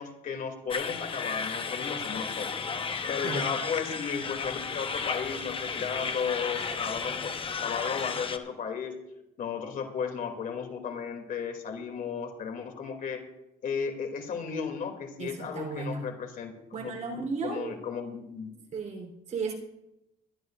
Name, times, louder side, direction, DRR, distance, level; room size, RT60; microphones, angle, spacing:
voice 1, 0.0-2.6 3.1-8.9 9.4-13.2 13.6-18.5, left 6 dB, 55° left, 3 dB, 2.7 m, -35 dB
sound 1, 0.7-8.4, left 5 dB, 30° left, 1.0 m, -33 dB
voice 2, 15.2-16.0 16.7-17.8 18.7-19.5, right 4 dB, 45° right, 1 dB, 3.8 m, -34 dB
22.0 x 13.0 x 2.6 m, 0.88 s
cardioid pair, 110°, 17 cm